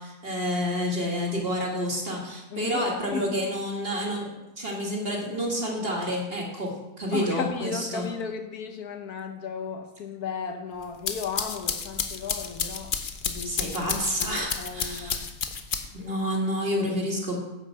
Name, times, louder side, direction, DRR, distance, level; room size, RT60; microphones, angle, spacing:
voice 1, 0.0-4.3 4.6-6.7 7.0-8.1 13.4-15.3 15.9-17.4, equal, 35° right, -1 dB, 2.2 m, -29 dB
voice 2, 2.5-2.9 3.1-3.4 7.1-13.0 13.3-13.7 14.2-15.2, left 6 dB, 70° left, 6 dB, 1.4 m, -35 dB
sound 1, 10.8-16.1, left 6 dB, 45° left, 0.7 m, -31 dB
10.0 x 5.6 x 7.3 m, 1.0 s
omnidirectional pair, 1.7 m